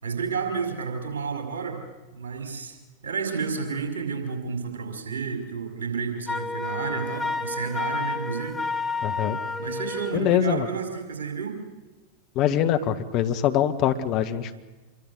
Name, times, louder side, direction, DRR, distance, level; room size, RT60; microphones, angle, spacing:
voice 1, 0.0-1.8 2.1-2.8 3.0-8.6 9.6-11.6, right 5 dB, 65° right, 6 dB, 5.6 m, -31 dB
Wind instrument woodwind instrument, 6.3-10.2, left 4 dB, 10° left, 1.9 m, -30 dB
voice 2, 9.0-9.4 10.1-10.7 12.3-14.6, left 10 dB, 40° left, 8 dB, 1.7 m, -23 dB
27.0 x 22.5 x 8.2 m, 1.1 s
figure-of-eight pair, 90°, 0 cm